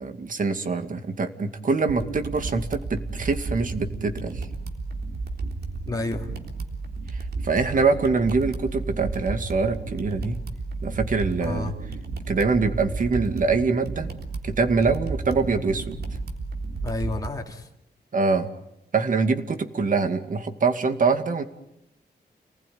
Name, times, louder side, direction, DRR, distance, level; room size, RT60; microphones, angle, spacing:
voice 1, 0.0-4.5 7.4-10.4 10.8-11.7 12.3-14.1 14.4-16.0 18.1-18.5 18.9-21.4, right 4 dB, 55° right, 7 dB, 2.3 m, -24 dB
sound 1, 1.9-17.3, right 3 dB, 75° right, 3.6 m, -33 dB
voice 2, 5.9-6.3 11.4-11.7 16.8-17.7, left 2 dB, 20° left, 0 dB, 2.7 m, -30 dB
29.5 x 20.0 x 9.5 m, 0.84 s
wide cardioid pair, 105°, 17 cm